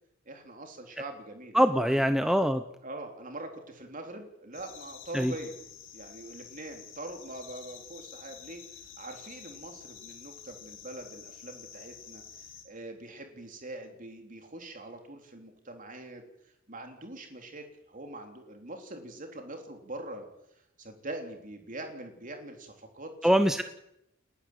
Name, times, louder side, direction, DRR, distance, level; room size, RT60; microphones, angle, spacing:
voice 1, 0.3-1.6 1.9-2.2 2.8-5.5 5.9-8.6 9.0-16.2 16.7-20.3 20.8-23.6, right 2 dB, 40° right, 4 dB, 3.6 m, -43 dB
voice 2, 1.5-2.6 5.1-5.3 23.2-23.6, equal, ahead, 8 dB, 0.8 m, -23 dB
sound 1, 4.5-12.6, left 8 dB, 70° left, 3.6 m, -49 dB
30.0 x 11.5 x 9.2 m, 0.83 s
head